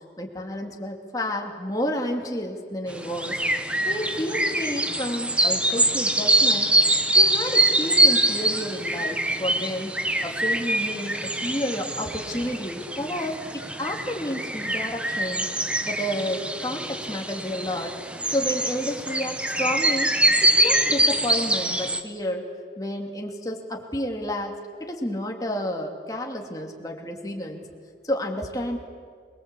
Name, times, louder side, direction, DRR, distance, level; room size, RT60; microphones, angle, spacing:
voice 1, 0.2-3.4 3.8-6.7 7.1-9.9 10.2-15.5 15.8-17.9 18.3-20.1 20.4-22.5 22.8-24.5 24.8-27.7 28.0-28.8, left 1 dB, 20° left, 1 dB, 2.8 m, -30 dB
sound 1, 2.9-22.0, right 1 dB, 5° right, 1.1 m, -24 dB
27.5 x 22.0 x 8.4 m, 2.1 s
head